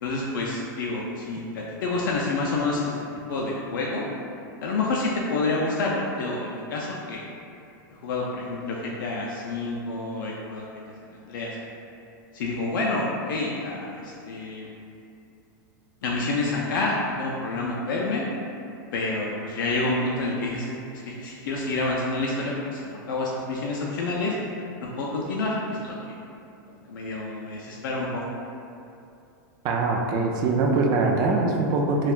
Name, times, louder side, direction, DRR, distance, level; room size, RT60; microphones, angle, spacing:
voice 1, 0.0-3.0 3.3-4.1 4.6-7.2 8.0-10.7 11.2-11.6 12.3-14.7 16.0-18.3 18.9-24.4 24.8-26.2 26.7-28.2, left 2 dB, 80° left, -3 dB, 0.4 m, -28 dB
voice 2, 29.6-32.1, right 3 dB, 40° right, 1 dB, 0.4 m, -23 dB
3.4 x 2.3 x 2.4 m, 2.6 s
hypercardioid pair, 130°, 11 cm